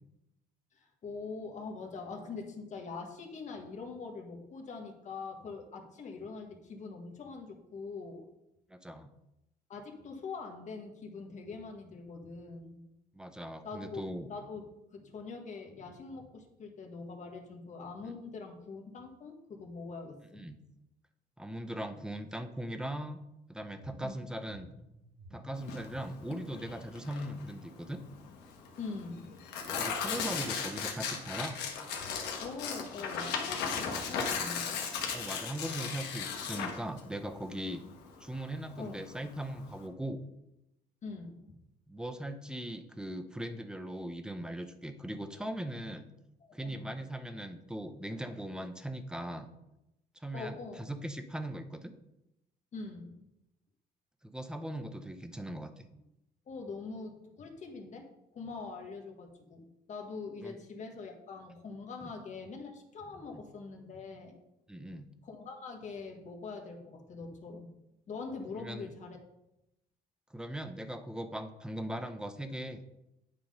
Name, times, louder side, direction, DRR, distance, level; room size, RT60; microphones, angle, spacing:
voice 1, 0.7-8.2 9.7-12.8 13.6-14.0 14.3-14.7 14.9-20.4 24.0-24.2 28.8-29.3 32.4-34.8 38.8-39.0 41.0-41.4 46.4-46.9 50.3-50.9 52.7-53.2 56.5-58.1 58.3-64.4 65.2-67.7 68.1-69.2, left 4 dB, 45° left, 2 dB, 1.4 m, -43 dB
voice 2, 8.7-9.1 13.1-14.3 18.0-18.1 20.3-20.6 21.4-23.2 23.5-24.7 25.3-28.0 29.7-31.6 33.9-34.0 35.1-37.8 38.2-40.3 41.9-46.1 46.5-49.5 50.2-51.9 54.2-55.9 60.4-60.6 62.0-62.1 63.3-63.4 64.7-65.1 68.6-68.9 70.3-72.8, right 1 dB, 5° right, 8 dB, 0.7 m, -39 dB
sound 1, 23.6-29.6, right 1 dB, 55° right, 2.0 m, -56 dB
Tearing, 25.6-39.8, left 6 dB, 85° left, 1.3 m, -37 dB
9.7 x 3.8 x 5.1 m, 0.88 s
cardioid pair, 110°, 17 cm